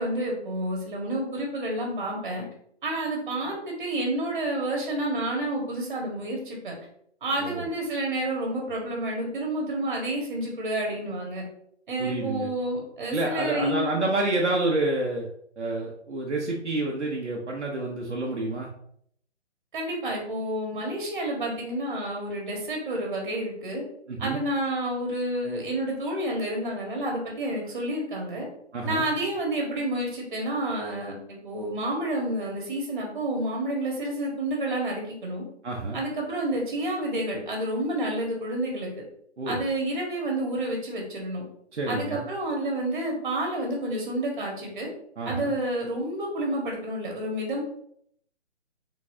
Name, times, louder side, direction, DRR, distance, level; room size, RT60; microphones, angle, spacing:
voice 1, 0.0-2.4 2.8-6.7 7.2-11.4 11.9-13.9 19.7-23.8 24.2-28.5 28.8-35.4 35.9-38.9 39.5-41.4 41.9-44.9 45.2-47.6, right 1 dB, 45° right, 0 dB, 1.6 m, -29 dB
voice 2, 12.0-12.5 13.1-15.3 15.6-18.7 24.1-24.4 28.7-29.0 35.6-36.0 39.4-39.6 41.7-42.2 45.2-45.5, right 2 dB, 75° right, -2 dB, 1.0 m, -28 dB
4.2 x 3.9 x 2.7 m, 0.66 s
figure-of-eight pair, 150°, 35 cm